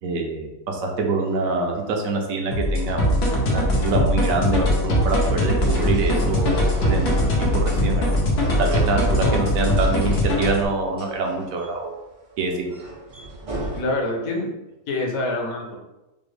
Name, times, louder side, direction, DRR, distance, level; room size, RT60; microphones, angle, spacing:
voice 1, 0.0-8.1 8.6-12.0 12.4-12.8, right 3 dB, 70° right, 2 dB, 1.0 m, -25 dB
sound 1, 1.3-13.8, right 1 dB, 45° right, 0.4 m, -37 dB
sound 2, 2.5-10.3, left 2 dB, 50° left, 0.4 m, -25 dB
sound 3, 3.0-10.6, equal, 85° left, 1.4 m, -22 dB
voice 2, 13.7-14.5 14.9-15.8, left 2 dB, 65° left, 1 dB, 1.2 m, -26 dB
5.0 x 2.1 x 3.2 m, 1.0 s
omnidirectional pair, 1.6 m